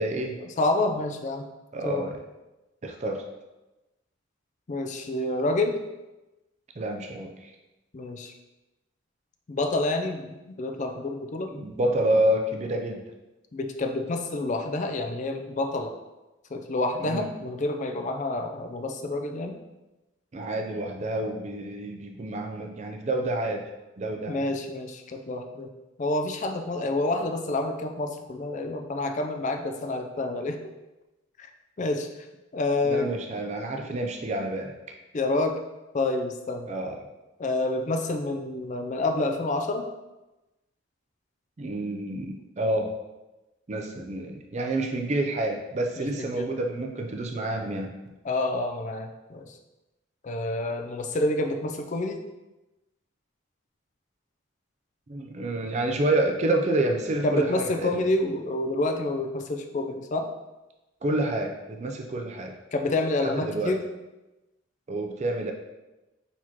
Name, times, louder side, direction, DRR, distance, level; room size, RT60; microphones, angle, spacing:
voice 1, 0.0-0.4 1.7-2.2 2.8-3.3 6.8-7.5 11.5-13.0 17.0-17.3 20.3-23.7 24.0-24.5 32.8-34.8 36.7-37.0 41.6-42.9 43.7-47.9 55.1-58.1 61.0-62.5 63.2-63.8 64.9-65.5, right 1 dB, 35° right, 3 dB, 0.4 m, -28 dB
voice 2, 0.6-1.5 1.8-2.1 4.7-5.8 7.9-8.3 9.5-11.5 13.5-15.9 16.5-19.6 24.3-25.7 26.0-30.6 31.4-31.5 31.8-32.1 32.5-33.1 35.1-35.6 35.9-36.7 37.4-39.9 46.0-46.5 48.2-49.5 50.2-52.2 57.2-60.3 62.7-63.8, left 2 dB, 40° left, 5 dB, 0.4 m, -28 dB
4.2 x 2.8 x 4.5 m, 1.0 s
head